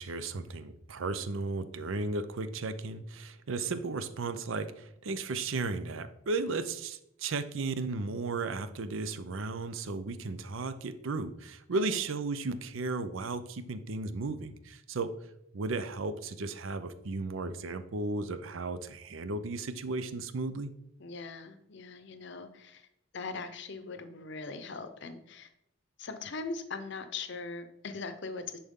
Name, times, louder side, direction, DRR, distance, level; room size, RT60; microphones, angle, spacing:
voice 1, 0.0-15.1 15.5-20.7, right 3 dB, 70° right, 12 dB, 0.6 m, -35 dB
voice 2, 21.0-22.9 23.1-25.5 26.0-28.6, left 4 dB, 60° left, 9 dB, 0.7 m, -40 dB
10.0 x 4.2 x 3.6 m, 0.77 s
head